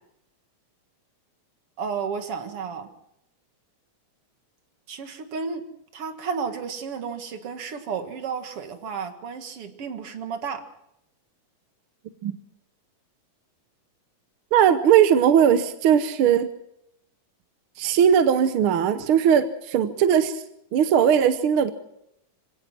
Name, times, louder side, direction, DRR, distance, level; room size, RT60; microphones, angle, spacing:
voice 1, 1.8-2.9 4.9-5.6 5.9-10.7, right 6 dB, 50° right, 2.5 m, -32 dB
voice 2, 14.5-16.5 17.8-20.4 20.7-21.7, right 8 dB, 70° right, 1.3 m, -19 dB
26.0 x 17.0 x 6.1 m
omnidirectional pair, 3.6 m